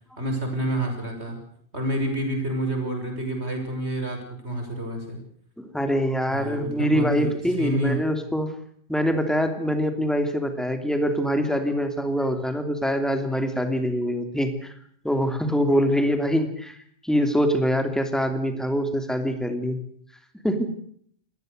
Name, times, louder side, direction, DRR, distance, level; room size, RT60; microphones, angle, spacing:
voice 1, 0.2-1.4 1.7-5.2 6.3-7.3 7.6-8.0, right 1 dB, 80° right, 4 dB, 6.5 m, -28 dB
voice 2, 5.6-8.5 8.9-14.7 15.0-16.8 17.0-19.8 20.4-20.8, equal, ahead, 7 dB, 2.9 m, -24 dB
26.0 x 20.0 x 6.7 m, 0.63 s
omnidirectional pair, 1.1 m